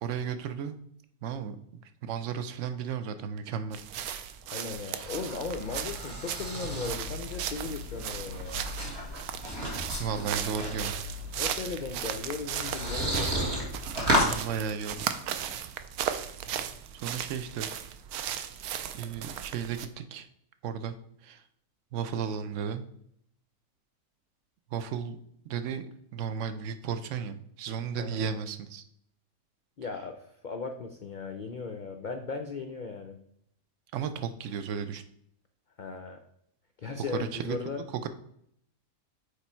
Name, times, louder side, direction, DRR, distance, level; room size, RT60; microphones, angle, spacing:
voice 1, 0.0-0.8 1.2-3.8 4.9-5.1 10.0-11.6 14.1-15.1 17.0-17.7 18.9-20.3 20.6-20.9 21.2-21.4 21.9-22.9 24.7-25.2 25.4-25.8 26.1-28.8 33.9-35.0 37.2-37.6 38.0-38.1, right 7 dB, 65° right, 10 dB, 0.9 m, -34 dB
sound 1, 3.7-19.9, right 10 dB, 85° right, 1.1 m, -37 dB
voice 2, 4.5-8.6 11.4-13.4 28.0-28.2 29.8-33.2 35.8-36.2 36.8-37.8, left 4 dB, 75° left, 5 dB, 0.4 m, -37 dB
sound 2, 4.8-14.3, equal, 45° right, 1.9 m, -33 dB
6.8 x 4.6 x 4.4 m, 0.71 s
omnidirectional pair, 1.5 m